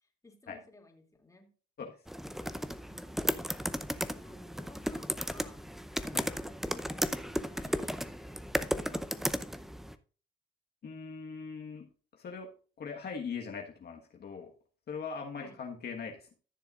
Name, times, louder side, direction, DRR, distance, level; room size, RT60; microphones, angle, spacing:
voice 1, 0.0-1.5 4.0-5.6 7.5-9.1 15.4-15.6, left 2 dB, 15° left, 2 dB, 2.5 m, -56 dB
sound 1, 2.1-10.0, equal, ahead, 0.6 m, -35 dB
voice 2, 10.8-11.9 12.1-12.5 12.8-14.5 14.9-16.4, left 5 dB, 55° left, 1 dB, 1.4 m, -41 dB
14.5 x 6.8 x 2.4 m, 0.38 s
cardioid pair, 90°, 20 cm